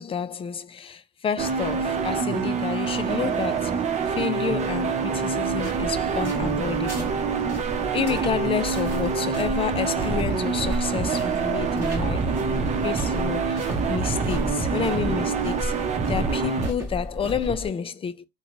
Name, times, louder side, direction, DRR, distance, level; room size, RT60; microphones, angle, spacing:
voice 1, 0.0-7.2 7.5-15.7 16.1-18.3, left 7 dB, 35° left, 0.5 m, -30 dB
sound 1, 1.4-16.7, right 5 dB, 45° right, 0.8 m, -26 dB
sound 2, 5.4-17.7, equal, 15° right, 2.5 m, -34 dB
3.8 x 2.2 x 3.1 m
cardioid pair, 110°, 17 cm